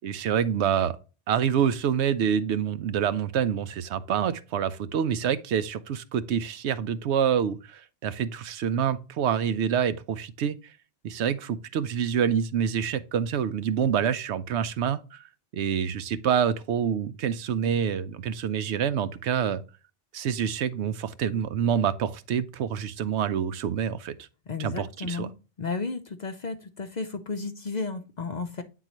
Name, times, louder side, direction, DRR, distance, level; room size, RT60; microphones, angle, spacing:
voice 1, 0.0-1.0 1.3-10.6 11.0-15.2 15.5-19.6 20.1-24.1 24.6-25.3, right 8 dB, 80° right, 0.9 m, -27 dB
voice 2, 24.5-25.3 25.6-28.6, left 4 dB, 50° left, 0.6 m, -33 dB
8.8 x 3.9 x 3.0 m
omnidirectional pair, 1.2 m